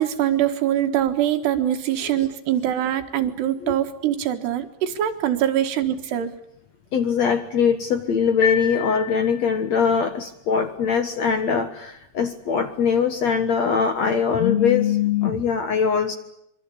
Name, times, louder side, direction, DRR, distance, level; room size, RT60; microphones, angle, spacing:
voice 1, 0.0-6.3, right 11 dB, 85° right, 7 dB, 3.8 m, -23 dB
voice 2, 6.9-16.1, left 6 dB, 60° left, 7 dB, 2.0 m, -22 dB
sound 1, 8.4-9.9, left 8 dB, 40° left, 2.7 m, -29 dB
25.5 x 24.0 x 8.5 m, 0.75 s
omnidirectional pair, 4.7 m